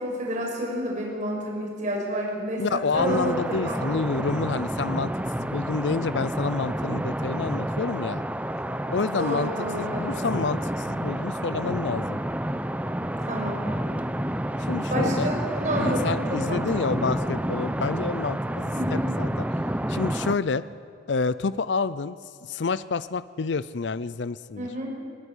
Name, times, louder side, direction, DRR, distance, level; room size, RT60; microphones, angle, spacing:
voice 1, 0.0-3.8 9.1-10.2 13.2-13.6 14.9-17.1 18.7-19.1 24.6-24.9, equal, 40° right, -1 dB, 6.1 m, -30 dB
voice 2, 2.6-5.1 5.4-8.2 8.9-9.5 9.8-12.2 14.6-15.3 15.7-19.5 19.9-20.6 21.1-24.7, left 4 dB, 65° left, 16 dB, 0.5 m, -28 dB
sound 1, 2.9-20.3, right 1 dB, 10° right, 0.7 m, -29 dB
19.5 x 19.0 x 10.0 m, 2.3 s
head